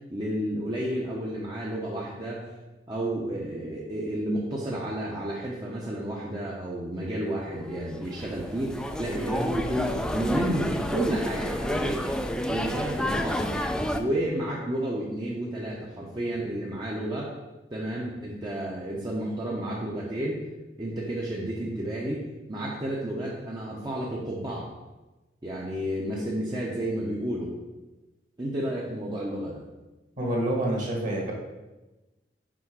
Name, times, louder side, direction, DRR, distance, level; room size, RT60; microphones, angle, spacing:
voice 1, 0.1-2.5 2.9-12.0 12.5-13.5 13.9-17.3 17.7-20.4 20.8-22.2 22.5-24.7 25.4-27.6 28.4-29.6, right 1 dB, 25° right, -4 dB, 0.8 m, -31 dB
sound 1, 7.7-14.0, equal, 5° left, 0.4 m, -30 dB
voice 2, 30.2-31.3, right 1 dB, 45° right, -1 dB, 1.8 m, -27 dB
6.1 x 5.2 x 4.7 m, 1.1 s
head